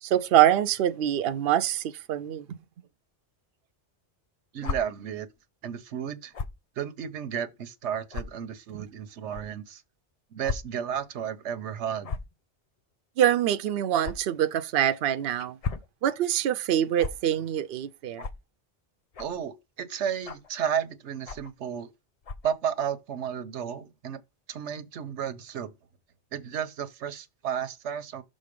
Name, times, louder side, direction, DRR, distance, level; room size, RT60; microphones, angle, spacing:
voice 1, 0.0-2.4 13.2-15.6 16.0-18.2, right 11 dB, 65° right, 0.7 m, -24 dB
voice 2, 4.5-5.3 5.6-6.3 6.8-9.8 10.3-12.1 19.2-21.9 22.4-24.2 24.5-25.7 26.3-28.2, right 8 dB, 85° right, 1.1 m, -33 dB
sound 1, 4.6-4.8 6.3-6.6 7.3-7.4 8.1-8.2 9.3-9.4 10.4-10.6 10.9-11.0 12.0-12.3 14.0-14.2 15.4-15.9 17.0-17.1 18.2-18.4 19.1-19.4 20.2-20.5 21.3-21.5 22.2-22.5, left 5 dB, 45° left, 0.5 m, -34 dB
6.5 x 3.8 x 5.1 m
omnidirectional pair, 1.2 m